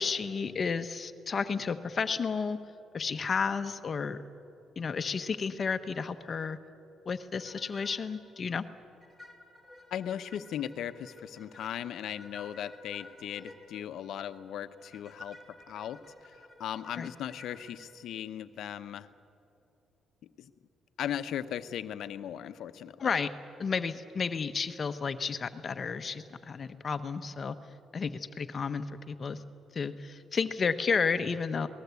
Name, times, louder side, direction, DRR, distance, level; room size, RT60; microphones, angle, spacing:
voice 1, 0.0-2.6 2.9-4.2 4.8-6.6 7.1-8.6 17.0-17.1 23.0-23.3 23.6-27.6 27.9-29.4 29.7-31.7, left 5 dB, 40° left, 10 dB, 1.0 m, -32 dB
sound 1, 7.4-8.1 8.4-8.5 9.0-17.9, left 2 dB, 5° right, 4.8 m, -52 dB
voice 2, 9.9-16.0 16.6-19.1 20.4-20.5 21.0-23.2, left 10 dB, 75° left, 11 dB, 0.9 m, -38 dB
27.0 x 19.5 x 8.3 m, 2.7 s
cardioid pair, 90°, 0 cm